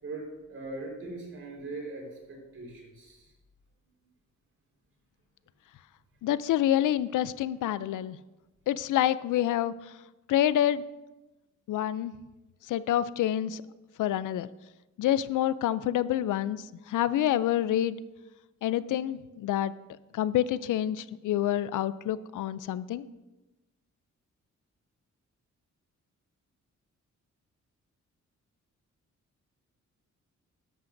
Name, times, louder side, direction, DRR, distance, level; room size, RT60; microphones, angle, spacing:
voice 1, 0.0-3.3, right 2 dB, 45° right, -1 dB, 4.2 m, -40 dB
voice 2, 6.2-8.2 8.7-9.7 10.3-10.8 11.7-12.1 12.7-13.6 14.0-14.5 15.0-18.0 18.6-19.7 20.1-23.1, left 12 dB, 80° left, 16 dB, 0.5 m, -27 dB
13.0 x 12.0 x 2.6 m, 1.1 s
wide cardioid pair, 135°, 31 cm